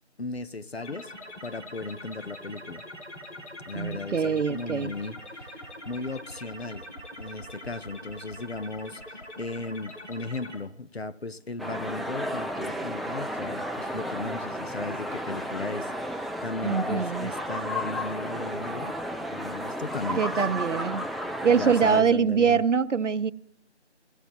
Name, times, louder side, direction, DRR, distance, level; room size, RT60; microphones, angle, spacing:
voice 1, 0.2-1.1 1.4-2.8 3.7-6.9 7.2-18.9 19.3-20.4 21.5-22.6, left 3 dB, 60° left, 0.5 m, -36 dB
sound 1, 0.8-10.6, left 1 dB, 85° left, 5.0 m, -43 dB
voice 2, 3.7-4.9 16.6-17.3 20.2-21.0 21.4-23.3, right 6 dB, 90° right, 0.6 m, -24 dB
sound 2, 11.6-22.0, equal, ahead, 0.3 m, -33 dB
16.0 x 8.4 x 2.8 m
figure-of-eight pair, 175°, 35 cm